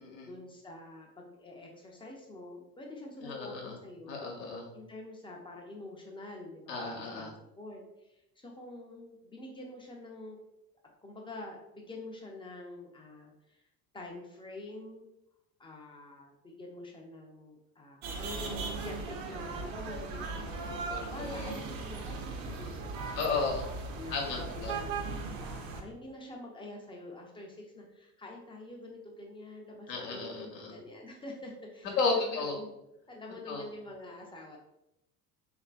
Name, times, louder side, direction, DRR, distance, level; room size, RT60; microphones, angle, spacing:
voice 1, 0.2-4.2 4.7-7.3 7.6-10.4 11.0-13.6 13.9-15.1 15.6-23.2 23.9-32.7 33.1-34.6, left 2 dB, 10° left, 0 dB, 0.3 m, -46 dB
voice 2, 3.2-3.7 4.1-4.7 6.7-7.3 20.9-21.6 23.1-23.7 24.1-24.8 29.9-30.7 32.0-32.5 33.5-33.6, left 4 dB, 80° left, 0 dB, 0.8 m, -33 dB
sound 1, 18.0-25.8, right 4 dB, 60° right, 0.6 m, -38 dB
3.1 x 2.5 x 2.3 m, 0.87 s
hypercardioid pair, 65°, 49 cm